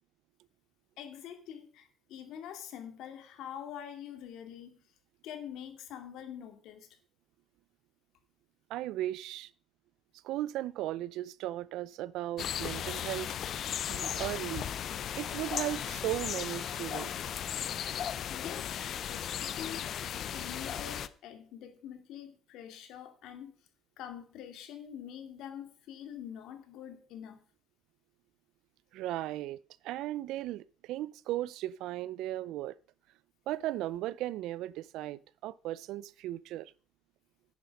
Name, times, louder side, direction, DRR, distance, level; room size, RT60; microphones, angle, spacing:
voice 1, 1.0-4.8 5.2-6.9 18.3-20.0 20.3-23.5 24.0-27.4, left 9 dB, 70° left, 2.3 m, -45 dB
voice 2, 8.7-9.5 10.2-13.3 13.9-14.7 15.2-17.3 28.9-29.6 29.8-32.8 33.5-36.7, right 14 dB, 70° right, 0.5 m, -36 dB
sound 1, 12.4-21.1, left 9 dB, 45° left, 0.5 m, -36 dB
10.5 x 9.6 x 5.3 m
cardioid pair, 165°, 0 cm